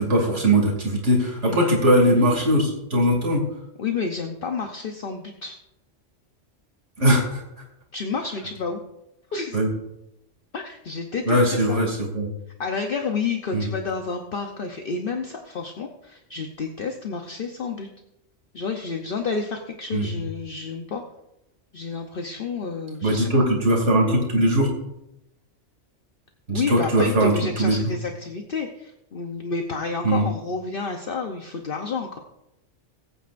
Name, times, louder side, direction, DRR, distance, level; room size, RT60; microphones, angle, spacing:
voice 1, 0.0-3.4 7.0-7.4 9.5-9.7 11.2-12.3 13.5-13.7 19.9-20.1 23.0-24.7 26.5-27.9 30.0-30.3, right 1 dB, 75° right, -1 dB, 3.0 m, -20 dB
voice 2, 3.8-5.6 7.9-8.8 9.3-9.6 10.5-11.8 12.6-17.9 18.5-21.0 21.7-23.3 26.5-32.2, left 4 dB, 50° left, 4 dB, 1.0 m, -30 dB
19.5 x 9.1 x 2.6 m, 0.87 s
omnidirectional pair, 1.2 m